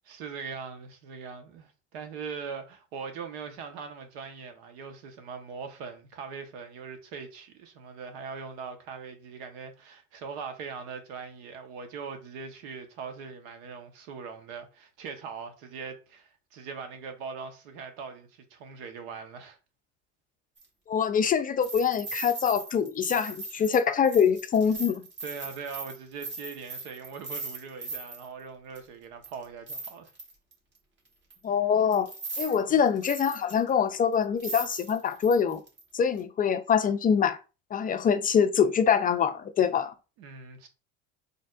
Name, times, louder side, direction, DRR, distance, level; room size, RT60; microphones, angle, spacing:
voice 1, 0.1-19.6 23.6-23.7 25.2-30.1 32.7-32.8 40.2-40.7, right 5 dB, 80° right, 1.0 m, -41 dB
sound 1, 20.6-20.7 21.6-28.3 28.8-28.9 29.2-30.5 31.3-31.4 31.9-32.6 32.9-33.7 34.1-34.2 34.4-35.8 36.2-36.3, right 3 dB, 35° right, 1.6 m, -39 dB
voice 2, 20.9-25.0 31.4-32.1 32.4-35.6 35.9-37.4 37.7-39.9, left 7 dB, 25° left, 0.4 m, -24 dB
4.1 x 3.4 x 2.4 m
supercardioid pair, 105°, 31 cm